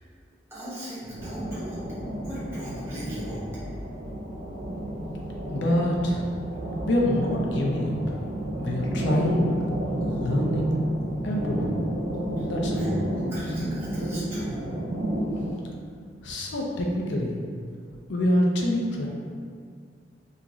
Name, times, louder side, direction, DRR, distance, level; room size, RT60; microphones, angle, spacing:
voice 1, 0.5-1.8 2.2-3.4 12.4-12.5 12.7-14.7, equal, 15° right, -11 dB, 1.0 m, -38 dB
sound 1, 1.1-15.5, right 1 dB, 55° right, 0.5 m, -31 dB
voice 2, 5.5-6.2 6.8-8.2 8.6-9.5 10.0-10.7 11.2-11.7 12.5-12.9 16.2-17.4 18.1-19.1, left 1 dB, 90° left, -1 dB, 0.5 m, -25 dB
2.4 x 2.4 x 2.9 m, 2.1 s
head